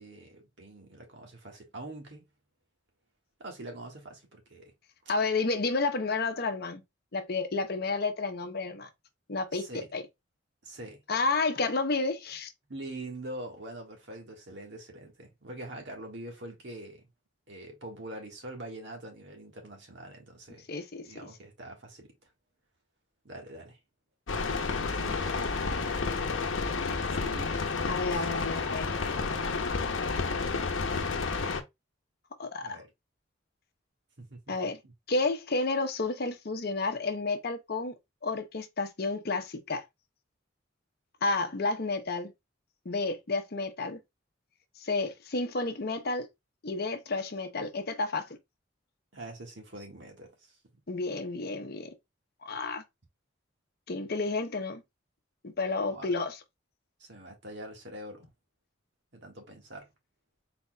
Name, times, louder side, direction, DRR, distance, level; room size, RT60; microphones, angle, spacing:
voice 1, 0.0-2.3 3.4-4.7 9.5-9.9 10.6-11.0 12.7-17.1 17.5-20.7 21.0-22.1 23.2-23.8 24.9-25.4 27.1-28.3 32.6-32.9 34.2-34.4 49.1-50.6 55.9-56.1 57.0-58.3 59.1-59.9, right 1 dB, 65° right, 1.6 m, -44 dB
voice 2, 5.1-6.8 7.1-8.9 9.3-10.0 11.1-12.5 20.7-21.1 27.9-28.9 32.4-32.8 34.5-34.8 35.1-37.9 38.2-39.8 41.2-42.3 42.8-44.0 44.8-46.3 46.6-48.4 50.9-51.9 52.4-52.8 53.9-54.8 55.4-56.3, left 3 dB, 55° left, 0.8 m, -31 dB
sound 1, 24.3-31.6, left 4 dB, 85° left, 0.8 m, -30 dB
4.2 x 4.0 x 2.2 m
head